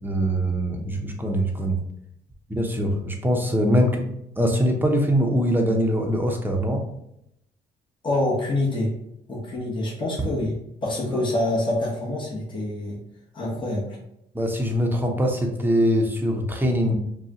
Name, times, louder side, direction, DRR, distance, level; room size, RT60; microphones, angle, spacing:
voice 1, 0.0-1.8 2.5-4.0 4.4-6.8 11.1-11.2 14.3-16.9, equal, 10° right, 2 dB, 0.8 m, -23 dB
voice 2, 8.0-8.9 9.3-10.5 10.8-13.0 13.3-14.0, left 1 dB, 25° left, -5 dB, 1.3 m, -26 dB
5.3 x 2.4 x 2.9 m, 0.80 s
cardioid pair, 90°, 20 cm